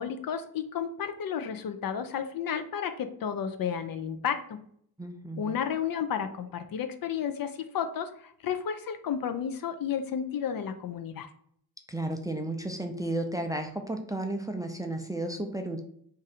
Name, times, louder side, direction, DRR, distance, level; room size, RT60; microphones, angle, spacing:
voice 1, 0.0-4.6 5.4-11.3, left 8 dB, 55° left, 8 dB, 0.5 m, -32 dB
voice 2, 5.0-5.6 11.9-15.8, right 1 dB, 10° right, 4 dB, 0.4 m, -33 dB
2.6 x 2.6 x 4.1 m, 0.66 s
cardioid pair, 50°, 43 cm